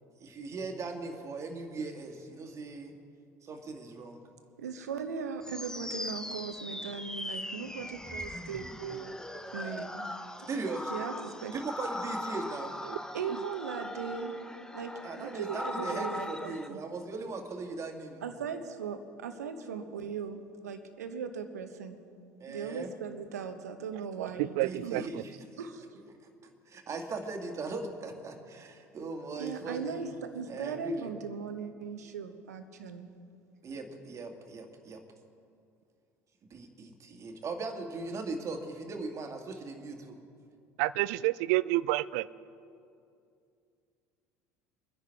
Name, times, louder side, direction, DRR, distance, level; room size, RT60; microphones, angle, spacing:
voice 1, 0.2-2.9 3.4-4.2 10.5-10.9 11.5-12.7 15.0-18.2 22.4-22.9 24.6-25.6 26.7-30.0 30.5-31.1 33.6-35.0 36.5-40.2, right 3 dB, 35° right, 4 dB, 2.0 m, -39 dB
voice 2, 4.6-9.2 9.5-10.1 10.9-11.5 13.1-14.3 14.7-16.8 18.2-22.0 22.5-24.5 24.8-25.1 25.6-25.8 29.4-33.1, right 6 dB, 80° right, 8 dB, 1.0 m, -38 dB
sound 1, 5.4-16.7, left 1 dB, 10° left, 0.9 m, -40 dB
voice 3, 24.2-25.2 40.8-42.2, right 18 dB, 65° right, 19 dB, 0.4 m, -29 dB
24.5 x 10.5 x 3.6 m, 2.5 s
hypercardioid pair, 65°, 9 cm